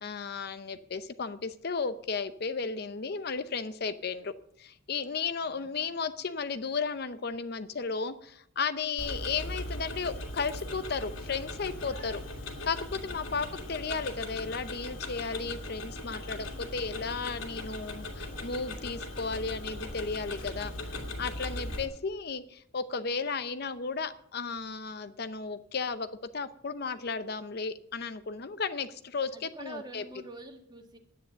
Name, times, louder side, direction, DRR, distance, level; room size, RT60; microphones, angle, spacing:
voice 1, 0.0-4.3 4.6-12.2 12.6-20.7 21.2-26.1 26.3-30.0, left 5 dB, 55° left, 11 dB, 0.7 m, -34 dB
voice 2, 5.4-5.8 9.0-9.2 13.4-13.7 16.2-16.6 29.3-31.0, right 1 dB, 20° right, 4 dB, 1.8 m, -48 dB
Tick-tock, 9.0-21.8, left 2 dB, 85° left, 2.5 m, -39 dB
10.5 x 9.8 x 7.6 m, 0.68 s
head